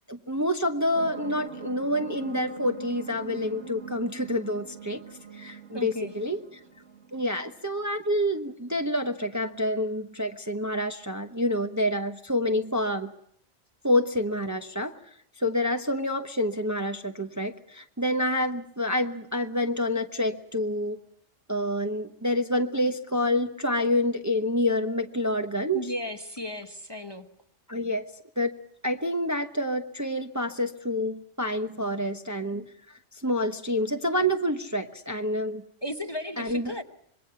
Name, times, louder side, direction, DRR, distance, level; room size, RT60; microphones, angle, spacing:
voice 1, 0.1-5.0 5.3-6.4 7.1-13.1 13.8-14.9 15.4-21.0 21.5-25.8 27.7-28.1 28.4-28.5 28.8-32.7 33.1-35.6 36.4-36.7, left 1 dB, 15° right, 5 dB, 0.9 m, -27 dB
sound 1, 0.9-8.0, right 7 dB, 90° right, 2.2 m, -43 dB
voice 2, 5.7-6.1 25.7-27.3 35.8-36.8, left 1 dB, 20° left, 6 dB, 1.0 m, -35 dB
26.0 x 22.0 x 5.6 m, 0.68 s
omnidirectional pair, 1.2 m